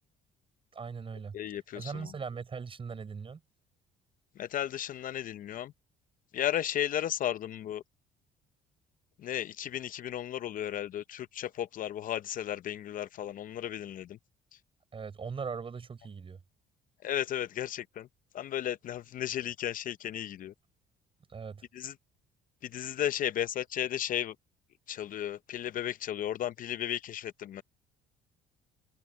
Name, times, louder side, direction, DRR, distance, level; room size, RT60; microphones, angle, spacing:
voice 1, 0.7-1.4 1.7-3.4 14.9-16.4 21.3-21.6, right 5 dB, 30° right, 6.0 m, -39 dB
voice 2, 1.3-2.1 4.4-5.7 6.3-7.8 9.2-14.2 17.0-18.1 18.3-20.5 21.7-21.9 22.6-24.3 24.9-27.6, left 11 dB, 55° left, 0.6 m, -34 dB
cardioid pair, 110°, 17 cm